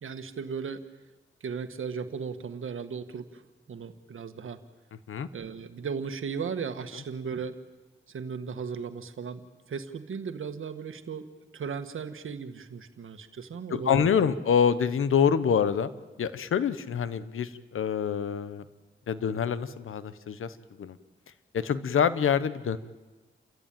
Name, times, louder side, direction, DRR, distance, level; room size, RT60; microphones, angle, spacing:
voice 1, 0.0-0.8 1.4-3.4 3.7-4.6 5.3-7.6 8.1-11.3 11.5-14.3, right 6 dB, 80° right, 9 dB, 1.6 m, -36 dB
voice 2, 13.7-15.9 16.2-18.6 19.1-21.0 21.5-22.8, left 7 dB, 90° left, 14 dB, 1.0 m, -26 dB
29.5 x 14.0 x 9.1 m, 1.3 s
cardioid pair, 50°, 21 cm